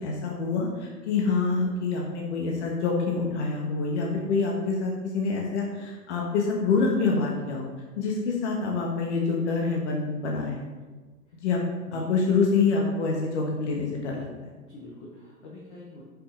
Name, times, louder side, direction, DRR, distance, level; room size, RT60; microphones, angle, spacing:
voice 1, 0.0-7.7 8.0-10.6 11.3-11.6 11.9-14.3, left 4 dB, 45° left, -1 dB, 1.4 m, -26 dB
voice 2, 11.8-12.4 14.5-16.0, left 2 dB, 15° left, -4 dB, 0.7 m, -46 dB
9.7 x 5.8 x 3.9 m, 1.3 s
figure-of-eight pair, 120°, 49 cm